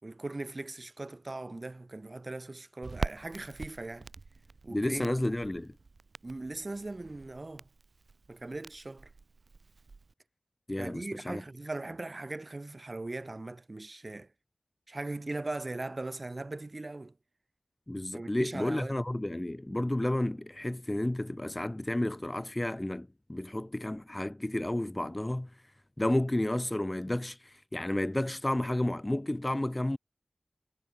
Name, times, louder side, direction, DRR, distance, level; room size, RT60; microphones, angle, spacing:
voice 1, 0.0-4.1 4.6-5.2 6.2-7.6 8.3-9.1 10.8-14.3 14.9-17.1 18.1-19.0, right 2 dB, 40° right, 3.6 m, -39 dB
Crackle, 2.8-10.1, right 3 dB, 70° right, 0.6 m, -44 dB
voice 2, 4.7-5.7 10.7-11.4 17.9-25.5 26.0-30.0, left 1 dB, 20° left, 0.5 m, -31 dB
wide cardioid pair, 75°, 0 cm